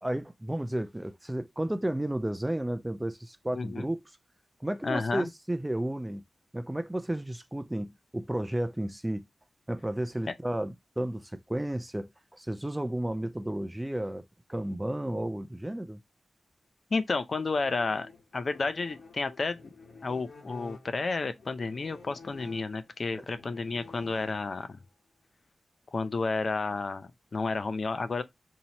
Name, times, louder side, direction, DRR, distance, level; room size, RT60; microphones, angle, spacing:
voice 1, 0.0-4.0 4.6-6.2 6.5-9.3 9.7-16.0 23.1-23.2, right 1 dB, 15° right, 0.4 m, -33 dB
voice 2, 3.5-3.9 4.8-5.3 16.9-19.7 20.0-24.8 25.9-28.2, left 3 dB, 55° left, 0.5 m, -31 dB
sound 1, 17.4-24.8, left 4 dB, 70° left, 1.1 m, -50 dB
2.8 x 2.8 x 4.1 m
cardioid pair, 65°, 0 cm